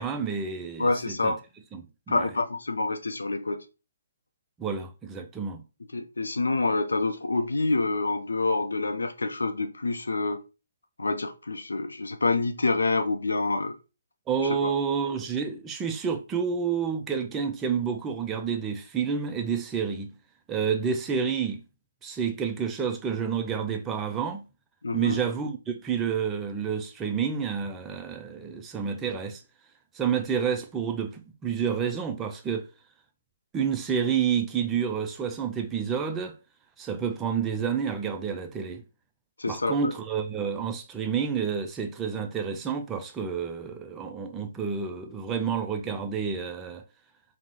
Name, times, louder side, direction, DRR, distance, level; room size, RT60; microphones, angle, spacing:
voice 1, 0.0-1.3 1.7-2.3 4.6-5.6 14.3-20.1 20.5-21.6 22.0-24.5 24.9-29.4 29.9-32.7 33.5-36.3 36.8-38.8 39.5-46.8, right 7 dB, 15° right, 0.4 m, -29 dB
voice 2, 0.8-1.4 2.1-3.6 5.9-10.4 11.0-13.7 14.6-14.7 24.8-25.2 39.4-39.9, left 3 dB, 75° left, 0.5 m, -27 dB
3.6 x 2.0 x 2.9 m
figure-of-eight pair, 140°, 0 cm